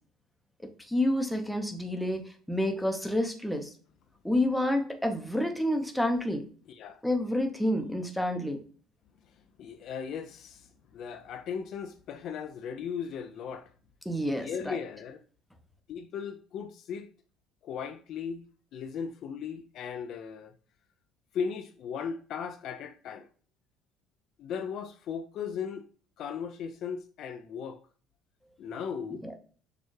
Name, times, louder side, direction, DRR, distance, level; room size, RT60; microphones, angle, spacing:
voice 1, 0.8-3.7 4.2-6.4 7.0-8.6 14.1-14.8 29.2-29.3, left 1 dB, ahead, 0.6 m, -29 dB
voice 2, 6.7-7.0 9.2-13.7 14.3-15.2 15.9-17.1 17.6-18.4 18.7-20.5 21.3-23.3 24.4-25.9 26.2-27.8 28.6-29.2, left 7 dB, 50° left, 0.3 m, -37 dB
6.3 x 2.3 x 3.1 m
cardioid pair, 155°, 0 cm